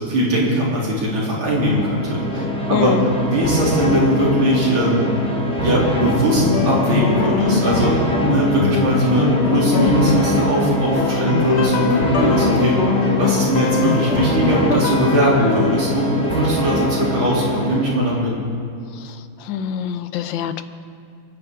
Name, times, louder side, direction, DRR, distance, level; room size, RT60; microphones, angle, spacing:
voice 1, 0.0-2.4 2.7-5.1 5.6-8.0 8.3-12.8 13.2-18.3, equal, 90° right, -5 dB, 4.0 m, -20 dB
sound 1, 1.4-18.2, equal, 5° left, 1.0 m, -23 dB
voice 2, 2.7-3.1 19.4-20.6, left 8 dB, 80° left, 11 dB, 1.4 m, -23 dB
sound 2, 6.4-15.8, left 4 dB, 45° left, 1.0 m, -22 dB
Wind instrument woodwind instrument, 8.2-11.1 11.4-14.9, left 4 dB, 30° left, 2.6 m, -35 dB
29.0 x 9.9 x 3.7 m, 2.5 s
omnidirectional pair, 2.1 m